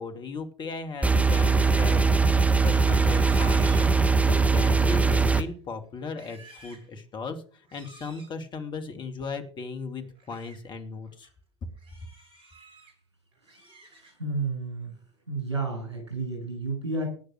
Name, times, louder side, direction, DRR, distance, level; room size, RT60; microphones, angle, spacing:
voice 1, 0.0-11.3, left 4 dB, 35° left, 7 dB, 2.5 m, -37 dB
sound 1, 1.0-5.4, right 4 dB, 10° right, 1.3 m, -21 dB
Livestock farm animals working animals, 2.8-4.4 4.9-5.5 6.0-6.9 7.6-8.3 10.0-10.6 11.0-11.3 11.8-12.9 13.3-14.4 14.7-15.1 15.5-15.9, right 3 dB, 40° right, 7.1 m, -51 dB
voice 2, 13.9-14.9 15.3-17.1, right 3 dB, 85° right, 3 dB, 7.4 m, -31 dB
18.5 x 6.5 x 6.4 m, 0.42 s
figure-of-eight pair, 75°, 14 cm